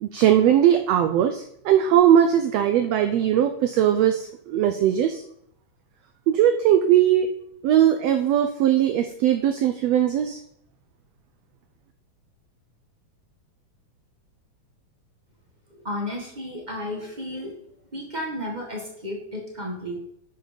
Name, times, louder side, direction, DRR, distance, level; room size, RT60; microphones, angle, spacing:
voice 1, 0.0-5.2 6.3-7.3 7.6-10.4, right 10 dB, 80° right, 8 dB, 1.4 m, -19 dB
voice 2, 15.8-17.5 17.9-20.0, left 1 dB, 45° right, 0 dB, 0.5 m, -32 dB
10.5 x 6.4 x 5.1 m, 0.74 s
omnidirectional pair, 3.6 m